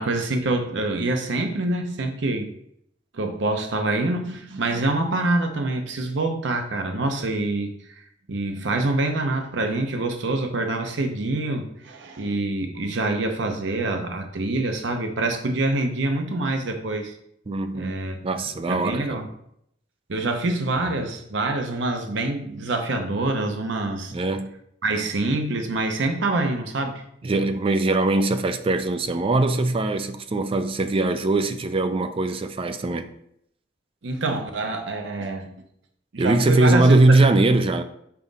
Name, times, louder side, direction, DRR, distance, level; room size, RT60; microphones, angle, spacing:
voice 1, 0.0-2.5 3.1-17.1 17.7-18.2 18.7-19.2 20.1-24.1 24.8-27.0 34.0-35.5 36.1-37.0, right 2 dB, 70° right, 0.7 m, -26 dB
voice 2, 17.5-19.2 24.1-24.5 27.2-33.1 36.2-37.8, right 2 dB, 30° right, 0.4 m, -21 dB
5.7 x 5.0 x 4.0 m
head